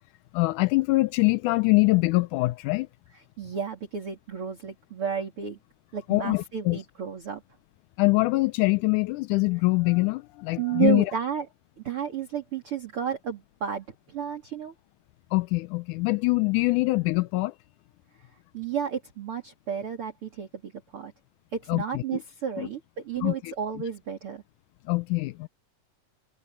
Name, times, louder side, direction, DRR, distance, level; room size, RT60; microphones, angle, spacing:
voice 1, 0.3-2.9 6.1-6.8 8.0-11.1 15.3-17.5 21.7-22.0 22.6-22.7 23.2-23.5 24.9-25.5, left 23 dB, 80° left, 1.9 m, -24 dB
voice 2, 3.4-5.6 5.9-7.4 10.6-11.5 11.8-14.7 18.5-21.1 21.5-24.4, right 8 dB, 40° right, 3.1 m, -32 dB
omnidirectional pair, 4.1 m